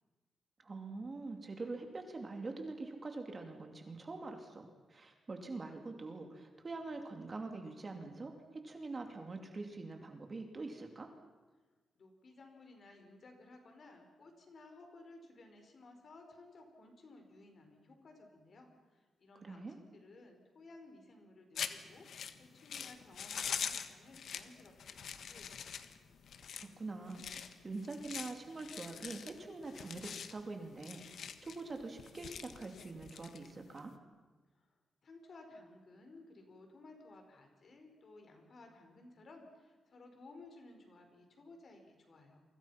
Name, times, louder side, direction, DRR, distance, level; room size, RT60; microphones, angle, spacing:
voice 1, 0.6-11.1 19.3-19.8 26.6-33.9, right 3 dB, 25° right, 4 dB, 2.6 m, -44 dB
voice 2, 11.9-25.8 34.6-34.7 35.0-42.4, left 2 dB, 40° left, 4 dB, 5.0 m, -57 dB
sound 1, 21.6-33.9, left 7 dB, 60° left, 1.5 m, -44 dB
29.5 x 24.5 x 5.9 m, 1.3 s
wide cardioid pair, 155°, 0 cm